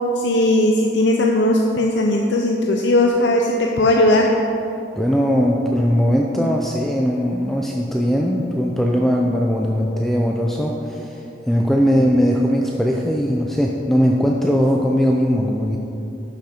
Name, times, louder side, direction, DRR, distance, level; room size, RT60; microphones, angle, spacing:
voice 1, 0.2-4.3, left 1 dB, 90° left, 1 dB, 0.6 m, -17 dB
voice 2, 5.0-15.8, equal, ahead, -1 dB, 0.5 m, -19 dB
11.5 x 5.9 x 4.4 m, 3.0 s
head